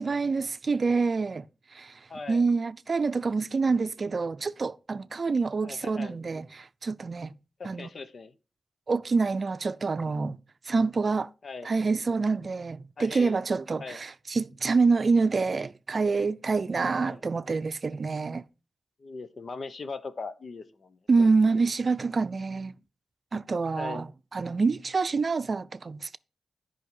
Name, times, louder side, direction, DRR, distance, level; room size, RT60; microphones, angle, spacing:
voice 1, 0.0-1.4 1.7-2.0 2.3-7.3 7.6-7.9 8.9-10.4 10.7-11.3 11.6-18.4 21.1-22.7 23.3-24.1 24.3-26.2, right 4 dB, 55° right, 0.5 m, -26 dB
voice 2, 2.1-2.4 5.6-6.2 7.6-8.3 11.4-11.7 13.0-13.4 13.8-14.0 17.0-17.2 19.0-21.3 23.8-24.0, left 4 dB, 65° left, 1.0 m, -40 dB
9.3 x 5.6 x 5.4 m
cardioid pair, 50°, 0 cm